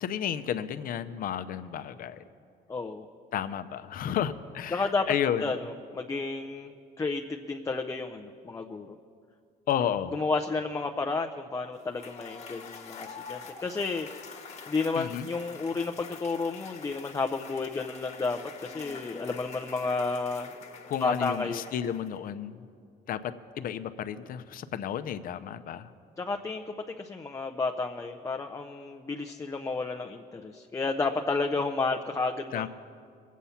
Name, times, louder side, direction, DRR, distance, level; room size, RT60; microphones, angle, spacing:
voice 1, 0.0-2.2 3.3-5.5 9.7-10.2 14.9-15.3 20.9-22.6 23.1-25.9 32.5-32.7, left 9 dB, 55° left, 11 dB, 0.7 m, -32 dB
voice 2, 2.7-3.1 4.7-5.1 5.4-9.0 10.1-14.1 14.7-20.5 21.0-21.7 26.2-32.7, left 3 dB, 20° left, 5 dB, 0.6 m, -31 dB
Cheering / Applause / Crowd, 11.8-22.3, left 5 dB, 40° left, 1.4 m, -46 dB
22.0 x 8.3 x 5.7 m, 2.4 s
cardioid pair, 110°, 17 cm